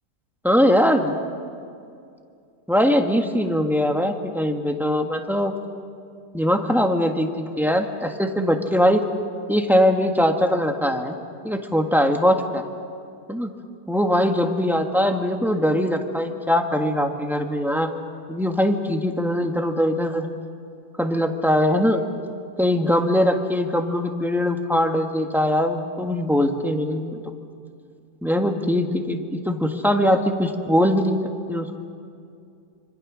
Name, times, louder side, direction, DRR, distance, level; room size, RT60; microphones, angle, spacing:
voice 1, 0.4-1.2 2.7-5.5 6.3-7.3 7.6-9.0 9.5-11.1 11.4-12.6 13.3-13.5 13.9-17.9 18.3-20.3 21.0-22.0 22.6-27.2 28.2-31.2 31.5-31.8, equal, ahead, 4 dB, 1.3 m, -21 dB
26.0 x 26.0 x 6.3 m, 2.4 s
omnidirectional pair, 1.7 m